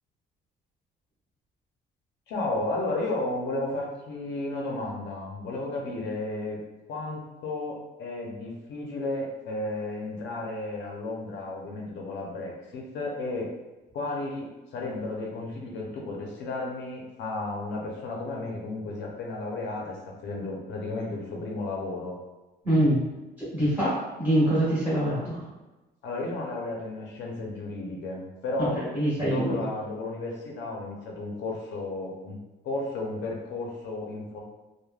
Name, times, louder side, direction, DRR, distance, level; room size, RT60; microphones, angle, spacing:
voice 1, 2.3-6.6 6.9-13.5 13.9-20.0 20.2-22.2 26.0-28.8 29.2-32.4 32.6-34.4, left 2 dB, 80° left, -1 dB, 0.6 m, -33 dB
voice 2, 22.6-23.0 23.4-25.5 28.6-29.7, right 1 dB, 10° right, -11 dB, 1.4 m, -25 dB
3.2 x 2.1 x 2.2 m, 1.1 s
cardioid pair, 180°, 18 cm